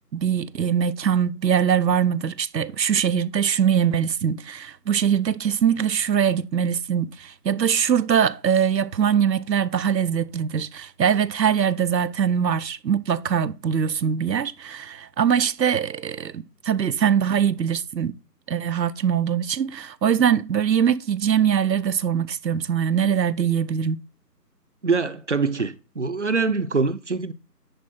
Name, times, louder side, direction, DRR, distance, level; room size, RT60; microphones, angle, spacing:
voice 1, 0.1-18.1 18.5-24.0, right 8 dB, 85° right, 0.7 m, -22 dB
voice 2, 24.8-27.3, right 4 dB, 45° right, 0.6 m, -24 dB
10.5 x 4.4 x 4.2 m
figure-of-eight pair, 165°, 49 cm